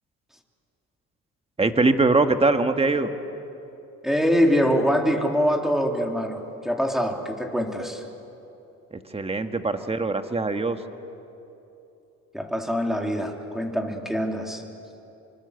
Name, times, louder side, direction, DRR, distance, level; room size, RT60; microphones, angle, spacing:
voice 1, 1.6-3.1 8.9-10.8, right 3 dB, 20° right, 7 dB, 1.6 m, -22 dB
voice 2, 4.0-8.0 12.3-14.6, equal, ahead, 2 dB, 3.3 m, -24 dB
26.0 x 25.0 x 8.2 m, 2.9 s
cardioid pair, 90°, 30 cm